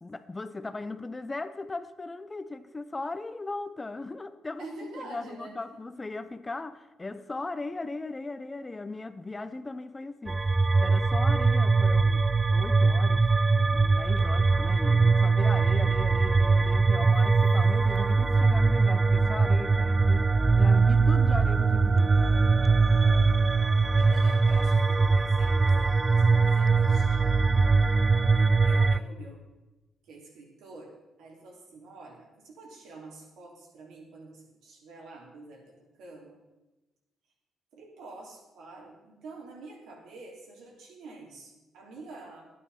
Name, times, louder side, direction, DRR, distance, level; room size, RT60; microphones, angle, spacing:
voice 1, 0.0-10.5 10.8-12.3 12.5-13.3 13.6-22.2, left 3 dB, 20° left, 0.7 m, -38 dB
voice 2, 4.6-5.6 23.8-27.4 28.2-29.4 30.0-36.4 37.7-42.5, right 3 dB, 85° right, 3.3 m, -47 dB
sound 1, 10.3-29.0, right 4 dB, 25° right, 0.4 m, -22 dB
11.5 x 9.7 x 5.5 m
cardioid pair, 90°, 0 cm